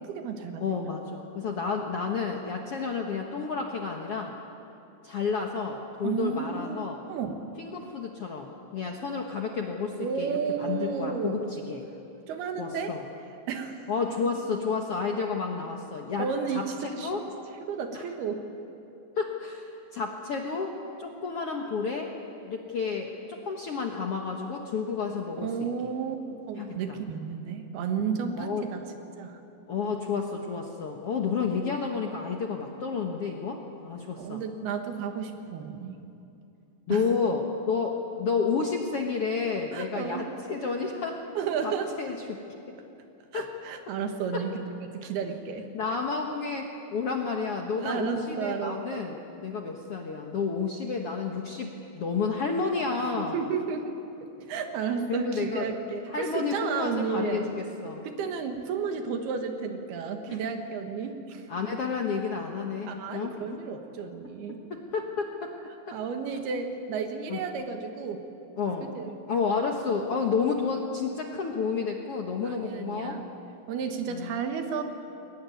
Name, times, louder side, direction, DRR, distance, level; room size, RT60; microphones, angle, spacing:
voice 1, 0.0-0.9 6.0-6.8 7.1-7.4 10.0-11.4 12.3-13.0 13.5-13.9 14.2-14.3 16.2-17.1 17.6-18.4 25.4-28.8 29.2-29.4 34.2-36.0 36.9-37.1 39.7-40.3 41.4-41.9 43.3-44.6 44.9-45.7 47.8-49.1 53.2-53.9 54.2-57.5 58.0-61.5 62.9-64.6 65.9-68.2 68.8-69.2 72.4-73.2 73.7-74.8, right 6 dB, 80° right, 5 dB, 3.5 m, -32 dB
voice 2, 0.6-4.3 5.0-7.0 7.6-11.8 12.6-13.0 13.9-17.2 17.9-18.0 19.2-22.1 22.4-25.5 25.8-25.9 26.6-27.0 28.4-28.6 29.7-34.4 36.9-41.2 41.6-41.7 42.0-42.4 43.3-43.5 44.3-44.4 45.0-45.1 45.7-53.4 55.1-55.7 56.1-58.1 60.3-60.4 61.5-63.3 64.7-65.5 65.9-66.0 67.3-67.4 68.6-68.9 69.3-73.2 74.1-74.4, left 5 dB, 60° left, 1 dB, 1.5 m, -31 dB
22.5 x 20.0 x 9.5 m, 2.8 s
omnidirectional pair, 4.5 m